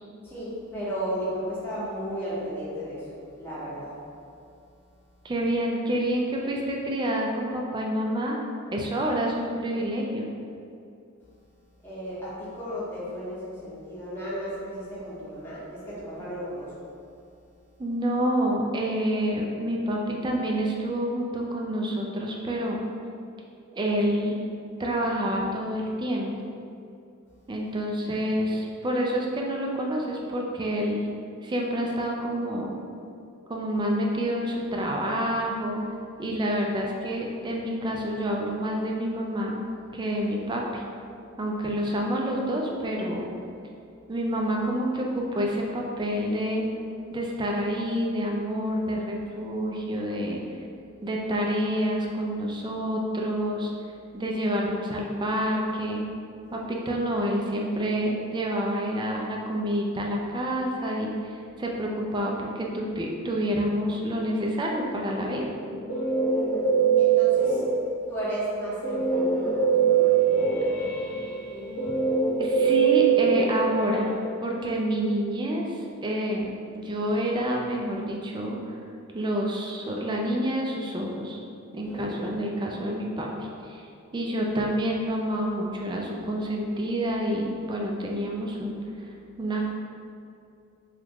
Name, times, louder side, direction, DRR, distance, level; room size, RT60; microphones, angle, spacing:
voice 1, 0.2-3.1 3.4-3.9 11.8-16.7 40.1-40.4 56.4-56.6 66.2-67.6 68.1-70.9 76.4-76.5 81.8-82.4, equal, 10° left, -10 dB, 0.8 m, -35 dB
voice 2, 5.2-8.4 8.7-10.3 17.8-22.8 23.7-24.3 24.8-26.3 27.5-31.1 31.4-32.8 33.5-35.8 36.2-39.6 39.9-40.8 41.4-43.3 44.1-46.7 47.1-50.4 51.0-53.7 54.1-56.0 56.5-65.5 72.4-74.1 74.4-78.6 79.1-81.4 81.7-83.9 84.1-88.8 89.4-89.7, equal, 20° right, -1 dB, 0.3 m, -28 dB
Guitar, 65.5-68.0 68.8-74.2, right 6 dB, 85° left, 0.8 m, -23 dB
3.0 x 2.3 x 3.4 m, 2.5 s
head